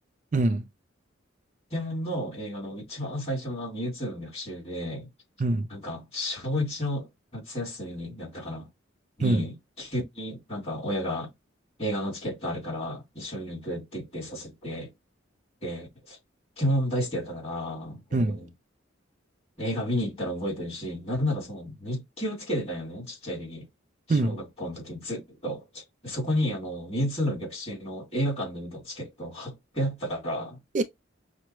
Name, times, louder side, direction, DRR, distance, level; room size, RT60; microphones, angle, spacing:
voice 1, 0.3-0.6 5.4-5.7 9.2-9.4 18.1-18.4 24.1-24.4 30.7-30.8, right 2 dB, 40° right, 0.4 m, -23 dB
voice 2, 1.7-5.1 5.7-8.7 9.2-11.3 11.8-14.9 15.6-16.2 16.6-18.5 19.6-23.7 24.1-30.6, equal, 30° left, 2.9 m, -32 dB
5.9 x 2.1 x 3.0 m
head